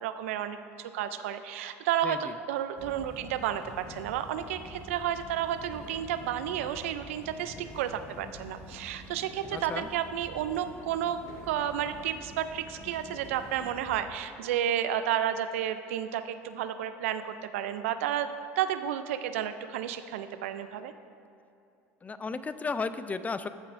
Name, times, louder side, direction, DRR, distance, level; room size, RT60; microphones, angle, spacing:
voice 1, 0.0-20.9, right 10 dB, 85° right, 11 dB, 0.4 m, -32 dB
sound 1, 2.8-14.0, left 1 dB, 55° left, 1.5 m, -47 dB
voice 2, 9.5-9.9 22.0-23.5, left 4 dB, 20° left, 12 dB, 0.4 m, -34 dB
14.0 x 5.9 x 2.6 m, 2.7 s
supercardioid pair, 85°, 7 cm